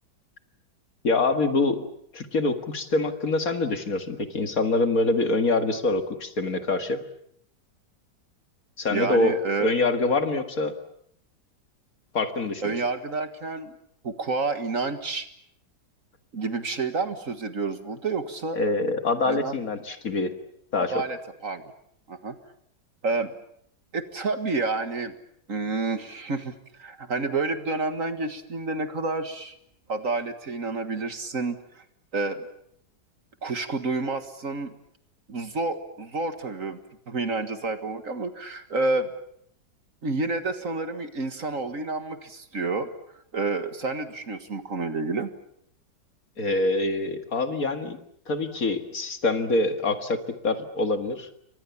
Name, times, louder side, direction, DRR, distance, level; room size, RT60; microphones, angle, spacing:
voice 1, 1.0-1.9 2.1-7.0 8.8-10.7 12.1-12.8 18.6-20.3 20.7-21.0 46.4-48.0 48.3-51.3, left 2 dB, 50° left, 7 dB, 2.3 m, -25 dB
voice 2, 8.9-9.7 12.6-13.7 14.0-15.3 16.3-18.6 19.3-19.5 20.9-21.6 22.1-22.4 23.0-23.3 23.9-25.1 25.5-29.5 29.9-31.8 32.1-32.5 33.4-34.7 35.3-36.8 37.1-39.1 40.0-42.9 43.3-45.3, right 3 dB, 50° right, 9 dB, 2.0 m, -29 dB
29.5 x 24.5 x 7.2 m, 0.70 s
omnidirectional pair, 1.9 m